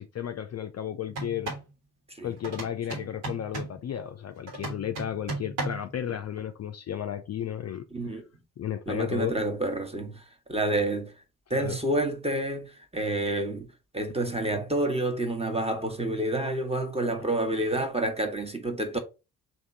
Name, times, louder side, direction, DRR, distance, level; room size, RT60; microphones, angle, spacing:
voice 1, 0.0-1.5 2.2-7.9 8.1-8.2 8.6-9.3 11.5-11.8, left 10 dB, 40° left, 0.5 m, -33 dB
sound 1, 1.1-1.7 2.4-3.8 4.5-5.9, right 2 dB, 85° right, 1.4 m, -35 dB
voice 2, 7.9-8.2 8.9-11.1 11.5-13.7 13.9-19.0, right 1 dB, 15° right, 1.2 m, -29 dB
3.5 x 2.7 x 4.2 m
hypercardioid pair, 40°, 43 cm